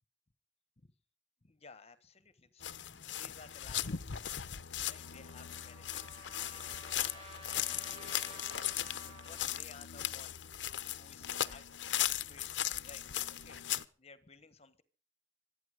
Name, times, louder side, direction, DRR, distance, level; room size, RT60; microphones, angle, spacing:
voice 1, 1.4-14.8, left 4 dB, 35° left, 14 dB, 1.2 m, -58 dB
sound 1, 2.6-13.8, left 11 dB, 70° left, 0.8 m, -38 dB
Trumpet, 4.9-9.6, equal, 30° right, 5.9 m, -53 dB
25.5 x 9.4 x 5.1 m, 0.38 s
head